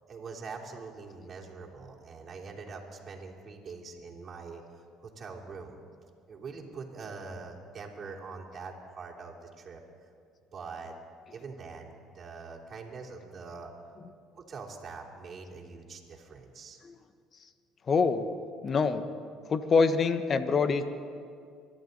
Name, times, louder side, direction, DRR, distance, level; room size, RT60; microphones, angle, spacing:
voice 1, 0.1-5.8 6.3-9.8 10.5-10.9 11.3-13.7 14.3-16.8, right 4 dB, 45° right, -2 dB, 3.1 m, -43 dB
voice 2, 17.9-18.3 18.6-19.0 19.5-20.9, left 4 dB, 45° left, 10 dB, 1.1 m, -25 dB
24.5 x 12.5 x 4.0 m, 2.2 s
supercardioid pair, 70°, 0 cm